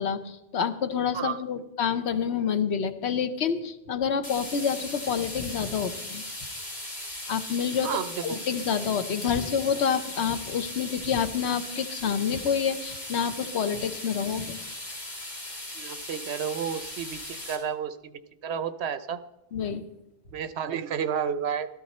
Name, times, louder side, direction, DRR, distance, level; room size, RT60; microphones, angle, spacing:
voice 1, 0.0-6.2 7.3-7.9 8.2-14.6 19.5-19.8, left 7 dB, 80° left, 10 dB, 1.1 m, -28 dB
sound 1, 4.2-17.6, left 1 dB, 40° left, 2.8 m, -38 dB
voice 2, 7.8-8.4 15.7-19.2 20.3-21.7, right 8 dB, 75° right, 13 dB, 1.0 m, -31 dB
14.0 x 13.0 x 4.2 m, 0.91 s
omnidirectional pair, 1.1 m